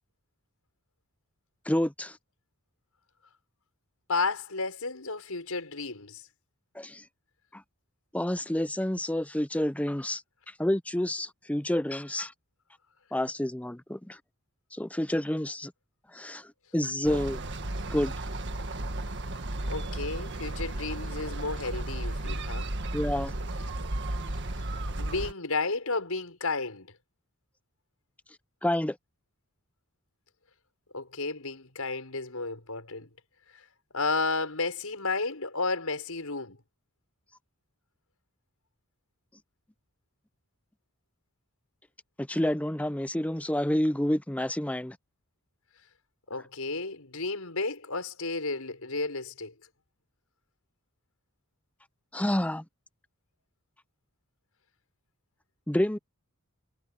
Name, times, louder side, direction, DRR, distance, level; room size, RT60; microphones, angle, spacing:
voice 1, 1.7-2.2 6.8-7.0 7.5-7.6 8.1-10.2 10.6-12.3 13.1-14.2 14.7-15.7 16.1-16.5 16.7-17.4 17.9-18.1 22.9-23.3 28.6-29.0 42.2-45.0 52.1-52.6 55.7-56.0, left 1 dB, 5° left, 0.6 m, -29 dB
voice 2, 4.1-6.2 17.1-17.2 19.7-22.7 25.0-26.9 30.9-33.1 33.9-36.6 46.3-49.5, left 3 dB, 85° left, 5.8 m, -32 dB
sound 1, 17.0-25.3, right 1 dB, 55° right, 1.7 m, -34 dB
head